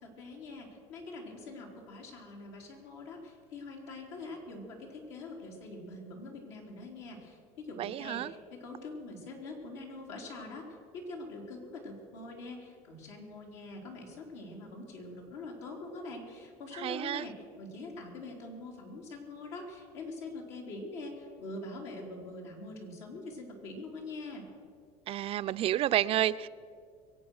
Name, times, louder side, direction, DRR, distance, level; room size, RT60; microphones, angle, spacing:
voice 1, 0.0-10.7 10.9-24.5, left 2 dB, 90° left, -1 dB, 3.8 m, -44 dB
voice 2, 7.8-8.3 16.7-17.3 25.1-26.5, right 12 dB, 40° right, 14 dB, 0.4 m, -30 dB
23.0 x 8.5 x 6.4 m, 2.2 s
supercardioid pair, 110°, 14 cm